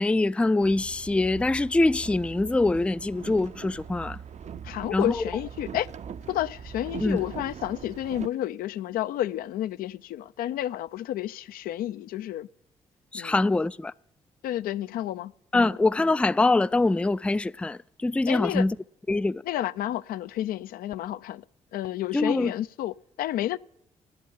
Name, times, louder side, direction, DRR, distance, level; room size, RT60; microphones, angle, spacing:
voice 1, 0.0-4.2 4.9-5.2 7.0-7.2 13.1-13.9 15.5-18.8 19.1-19.4 22.1-22.5, left 2 dB, 5° left, 0.4 m, -24 dB
Boat Water vehicle, 0.6-8.3, right 7 dB, 45° right, 0.6 m, -41 dB
voice 2, 4.6-5.9 6.3-12.5 13.1-13.3 14.4-15.7 18.3-18.6 19.5-21.4 21.7-23.6, left 13 dB, 70° left, 0.5 m, -31 dB
8.8 x 8.3 x 9.2 m
hypercardioid pair, 45°, 16 cm